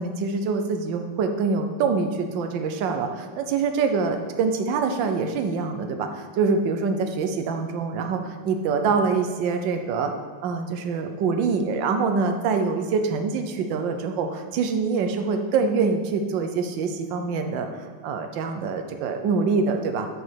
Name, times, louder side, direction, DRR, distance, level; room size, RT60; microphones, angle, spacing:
voice 1, 0.0-10.1 10.4-20.1, right 4 dB, 65° right, 6 dB, 1.4 m, -25 dB
9.3 x 5.3 x 6.3 m, 1.5 s
omnidirectional pair, 2.3 m